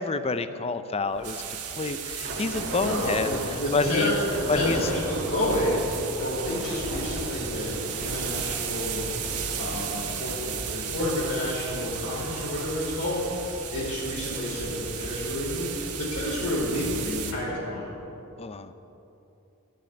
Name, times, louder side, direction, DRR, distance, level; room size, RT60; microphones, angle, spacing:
voice 1, 0.0-3.4 3.7-4.1 4.5-4.8 18.4-18.7, left 3 dB, 25° left, 11 dB, 0.5 m, -28 dB
Thunder / Rain, 1.1-17.4, equal, 50° right, 2.6 m, -37 dB
sound 1, 1.2-17.3, right 9 dB, 85° right, 1.4 m, -36 dB
voice 2, 2.8-5.8 6.1-9.0 9.6-13.3 13.7-17.9, left 1 dB, 65° left, -8 dB, 3.9 m, -30 dB
13.0 x 7.7 x 9.7 m, 3.0 s
head